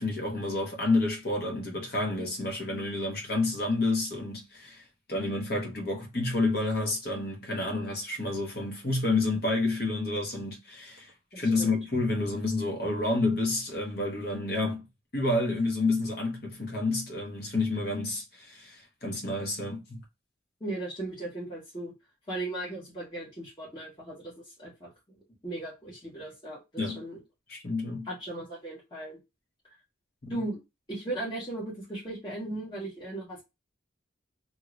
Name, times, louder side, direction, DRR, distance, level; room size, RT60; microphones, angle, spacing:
voice 1, 0.0-14.8 15.1-20.0 26.8-27.0 27.5-28.1 30.2-30.4, left 2 dB, 50° left, 1.1 m, -29 dB
voice 2, 11.3-11.7 20.6-21.9 22.3-25.2 25.4-27.2 28.0-29.2 30.3-30.6 30.9-33.4, right 1 dB, 25° left, 1.3 m, -37 dB
2.9 x 2.5 x 3.0 m
head